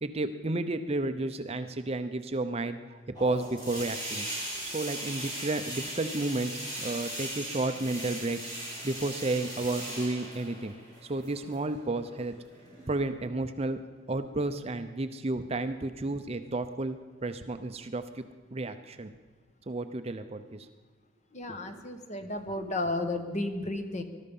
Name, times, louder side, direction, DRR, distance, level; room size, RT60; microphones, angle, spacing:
voice 1, 0.0-4.3 4.6-8.4 8.8-10.7 11.0-12.4 12.9-13.8 14.1-18.2 18.5-19.1 19.7-20.7, right 2 dB, 30° right, 9 dB, 0.6 m, -32 dB
sound 1, 3.1-13.0, right 1 dB, 20° left, 5.2 m, -39 dB
voice 2, 21.3-24.0, left 2 dB, 35° left, 7 dB, 1.2 m, -33 dB
20.5 x 12.5 x 5.4 m, 1.3 s
head